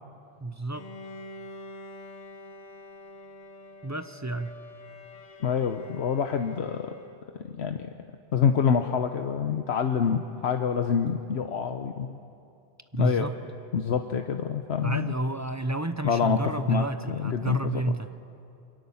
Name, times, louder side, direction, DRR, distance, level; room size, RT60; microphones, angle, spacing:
voice 1, 0.4-0.9 3.8-4.5 12.9-13.4 14.8-18.1, right 2 dB, 20° right, 10 dB, 0.7 m, -30 dB
Bowed string instrument, 0.7-7.5, left 1 dB, 40° left, 1.0 m, -46 dB
voice 2, 5.4-6.9 7.4-7.9 8.3-12.2 13.0-13.3 13.7-15.1 16.0-16.4 16.7-17.8, left 7 dB, 85° left, 6 dB, 1.2 m, -26 dB
28.5 x 24.0 x 7.1 m, 2.6 s
omnidirectional pair, 1.1 m